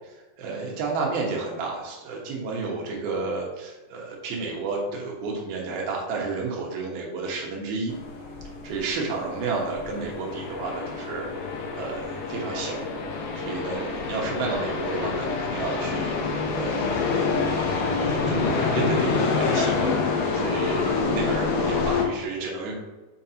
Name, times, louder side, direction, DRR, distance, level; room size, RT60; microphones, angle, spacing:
voice 1, 0.4-7.9 8.6-11.3 11.8-12.8 13.3-17.0 18.0-20.0 20.2-22.7, right 4 dB, 90° right, -1 dB, 3.1 m, -31 dB
sound 1, 7.9-22.1, left 4 dB, 75° left, 2.4 m, -27 dB
7.3 x 5.2 x 2.9 m, 1.2 s
omnidirectional pair, 4.2 m